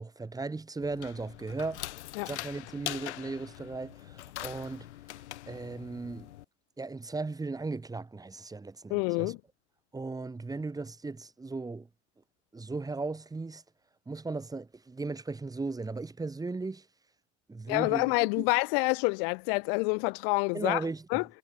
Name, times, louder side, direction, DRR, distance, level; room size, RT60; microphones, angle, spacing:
voice 1, 0.0-1.9 2.2-4.9 5.5-6.3 6.8-9.3 9.9-11.9 12.5-13.6 14.1-16.9 17.5-18.4 20.5-21.2, right 3 dB, 10° right, 1.5 m, -37 dB
sound 1, 0.8-6.4, left 15 dB, 85° left, 1.2 m, -42 dB
voice 2, 8.9-9.4 17.7-20.8 21.1-21.2, left 37 dB, 60° left, 0.5 m, -27 dB
hypercardioid pair, 100°, 33 cm